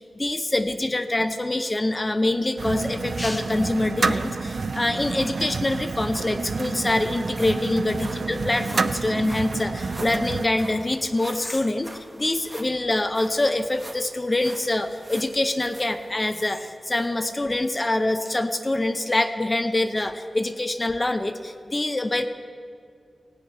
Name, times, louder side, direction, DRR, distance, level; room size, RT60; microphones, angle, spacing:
voice 1, 0.2-11.9 12.2-22.3, left 2 dB, 25° left, 8 dB, 0.5 m, -25 dB
sound 1, 2.6-10.5, right 4 dB, 55° right, 0.4 m, -29 dB
sound 2, 6.2-17.1 17.6-17.7 18.3-18.4, right 1 dB, 10° right, 1.0 m, -45 dB
16.5 x 5.8 x 9.1 m, 2.3 s
wide cardioid pair, 120°, 0 cm